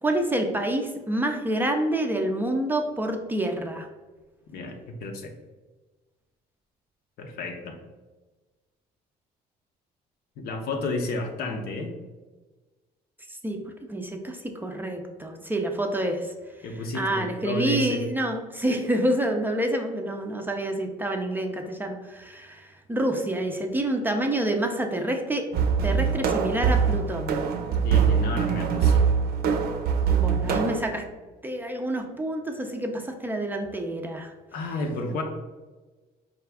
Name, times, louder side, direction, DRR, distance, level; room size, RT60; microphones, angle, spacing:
voice 1, 0.0-3.9 13.4-13.6 13.9-16.3 16.9-25.5 25.8-27.4 30.1-31.0 31.4-34.3, right 1 dB, 10° right, 3 dB, 0.4 m, -28 dB
voice 2, 4.5-5.3 7.2-7.8 10.4-11.9 16.6-18.0 18.7-18.8 27.8-29.1 34.5-35.2, left 2 dB, 65° left, 4 dB, 0.7 m, -31 dB
sound 1, 25.5-30.8, right 6 dB, 65° right, 0.5 m, -23 dB
4.9 x 2.3 x 3.4 m, 1.2 s
cardioid pair, 110°, 17 cm